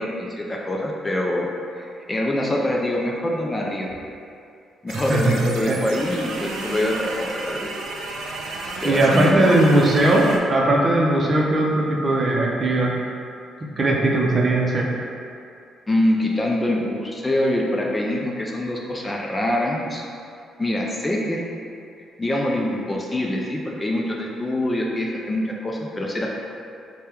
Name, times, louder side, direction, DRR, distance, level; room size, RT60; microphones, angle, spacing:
voice 1, 0.0-4.0 4.8-7.7 8.8-9.4 15.9-20.0 20.6-21.4 22.2-26.4, left 1 dB, 20° left, -2 dB, 0.4 m, -25 dB
voice 2, 4.9-5.8 8.8-12.9 13.8-14.9, right 1 dB, 35° right, -2 dB, 0.6 m, -19 dB
sound 1, 4.9-10.4, right 2 dB, 85° right, 0.4 m, -32 dB
4.3 x 2.2 x 3.4 m, 2.5 s
cardioid pair, 90°, 0 cm